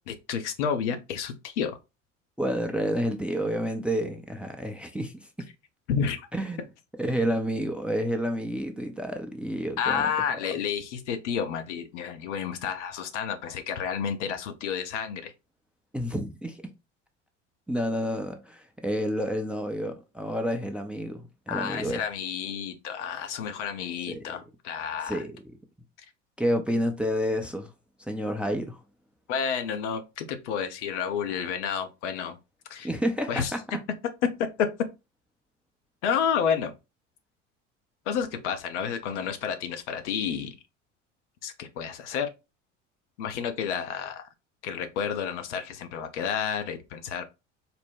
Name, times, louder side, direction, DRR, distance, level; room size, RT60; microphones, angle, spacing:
voice 1, 0.1-1.8 5.9-6.3 9.8-15.3 21.5-25.2 29.3-32.4 32.7-32.9 33.3-33.5 34.6-34.7 36.0-36.7 38.1-40.6 41.4-42.3 43.2-44.2 44.6-47.2, left 7 dB, 70° left, 0.7 m, -30 dB
voice 2, 2.4-5.5 6.3-6.7 7.0-10.1 15.9-16.7 17.7-22.0 24.1-24.2 25.1-25.6 26.4-27.7 28.0-28.8 32.8-33.6, equal, 5° right, 0.5 m, -29 dB
4.1 x 2.2 x 3.4 m
figure-of-eight pair, 65°, 37 cm